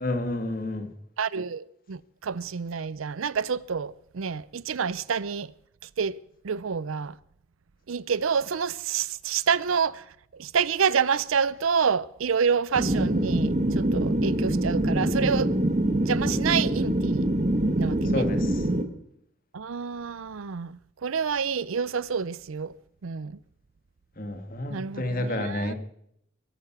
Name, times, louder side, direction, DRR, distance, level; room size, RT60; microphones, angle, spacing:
voice 1, 0.0-0.9 18.1-18.6 24.2-25.7, left 1 dB, 45° left, 1.8 m, -30 dB
voice 2, 1.2-5.5 6.0-6.2 6.4-7.2 7.9-10.1 10.3-15.5 16.0-17.3 17.8-18.3 19.5-22.7 23.0-23.4 24.7-25.7, right 6 dB, 85° right, 0.5 m, -28 dB
sound 1, 12.7-18.8, right 1 dB, 35° right, 1.2 m, -24 dB
22.0 x 9.2 x 5.9 m
head